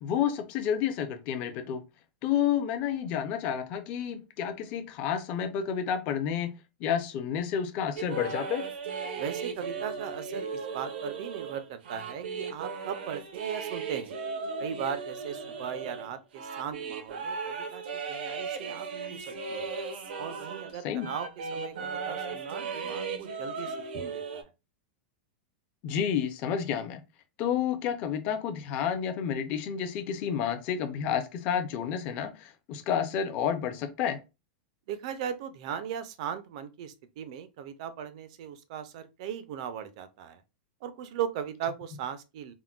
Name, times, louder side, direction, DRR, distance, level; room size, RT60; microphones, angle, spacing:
voice 1, 0.0-1.8 2.2-6.5 6.8-8.6 20.8-21.1 25.8-27.0 27.4-34.2, left 8 dB, 25° left, 0.4 m, -30 dB
sound 1, 8.0-20.7 21.0-24.4, right 5 dB, 85° right, 0.7 m, -36 dB
voice 2, 9.2-14.2 14.6-19.7 20.2-24.5 34.9-40.4 40.8-42.5, right 8 dB, 40° right, 0.4 m, -38 dB
3.6 x 2.1 x 2.3 m
supercardioid pair, 180°, 5 cm